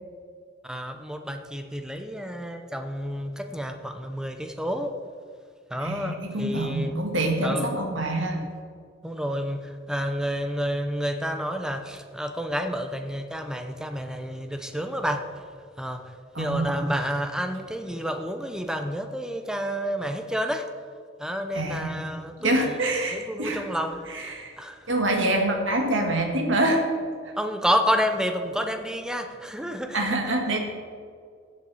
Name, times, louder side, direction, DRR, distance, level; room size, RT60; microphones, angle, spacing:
voice 1, 0.6-4.9 5.7-6.9 7.4-7.8 9.0-15.3 15.8-20.7 21.2-22.8 23.1-24.1 24.6-24.9 27.4-30.0, equal, 5° right, 6 dB, 0.7 m, -29 dB
voice 2, 5.8-8.4 16.3-16.7 21.5-21.9 22.4-23.6 24.1-24.5 24.9-26.8 27.2-27.3 29.9-30.6, right 1 dB, 80° right, 2 dB, 1.9 m, -26 dB
15.5 x 7.8 x 4.2 m, 2.1 s
head